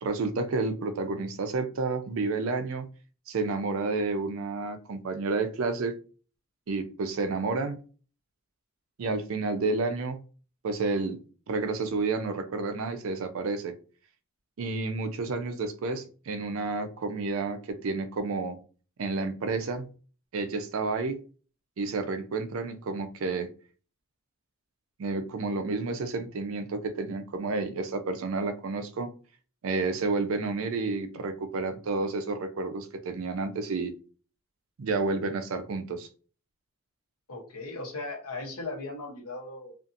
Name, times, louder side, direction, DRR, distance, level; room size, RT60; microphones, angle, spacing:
voice 1, 0.0-2.9 3.3-5.9 6.7-7.8 9.0-10.2 10.6-11.2 11.5-13.7 14.6-18.6 19.0-19.9 20.3-21.2 21.8-23.5 25.0-29.1 29.6-33.9 34.8-36.1, right 3 dB, 70° right, 0.4 m, -30 dB
voice 2, 37.3-39.7, left 2 dB, 90° left, 0.9 m, -37 dB
2.6 x 2.4 x 2.5 m
head